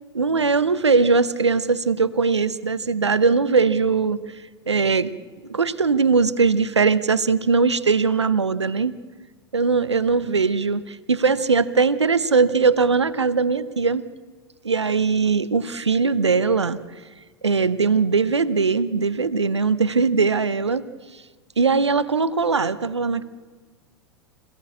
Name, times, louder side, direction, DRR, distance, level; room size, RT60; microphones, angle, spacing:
voice 1, 0.1-4.2 4.7-5.1 5.4-8.9 9.5-14.0 14.6-16.8 17.4-20.8 21.6-23.2, right 4 dB, 80° right, 14 dB, 1.0 m, -20 dB
27.0 x 17.0 x 8.5 m, 1.4 s
figure-of-eight pair, 90°, 14 cm